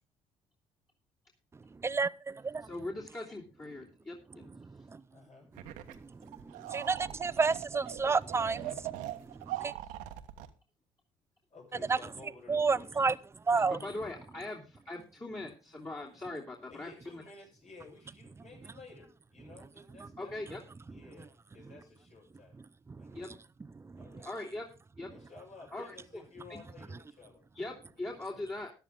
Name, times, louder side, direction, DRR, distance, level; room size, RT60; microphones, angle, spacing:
voice 1, 1.7-2.7 4.9-5.0 5.9-9.7 11.9-12.0 12.5-13.1 13.5-13.8 22.9-23.2 23.8-24.0, right 4 dB, 20° right, 0.5 m, -31 dB
voice 2, 2.6-4.6 6.2-6.3 13.6-17.2 20.2-20.6 23.1-23.3 24.2-24.6 25.0-25.1 25.7-26.2 26.5-26.6 27.5-28.7, left 2 dB, 25° left, 3.0 m, -41 dB
voice 3, 5.1-5.5 9.5-10.0 11.5-13.0 16.7-20.4 20.8-22.6 23.0-23.2 23.9-24.4 25.1-27.4 28.3-28.5, left 3 dB, 65° left, 7.3 m, -54 dB
sound 1, 5.6-6.0 6.2-10.5, right 14 dB, 85° right, 1.1 m, -41 dB
13.5 x 11.0 x 3.7 m
supercardioid pair, 70°, 14 cm